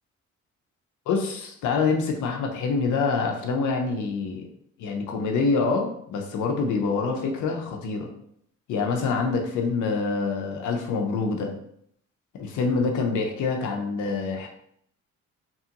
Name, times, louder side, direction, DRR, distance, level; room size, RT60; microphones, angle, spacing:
voice 1, 1.1-4.4 4.8-8.1 8.7-11.5 12.4-14.5, left 4 dB, 80° left, 3 dB, 0.7 m, -26 dB
2.9 x 2.4 x 2.8 m, 0.70 s
cardioid pair, 90°, 30 cm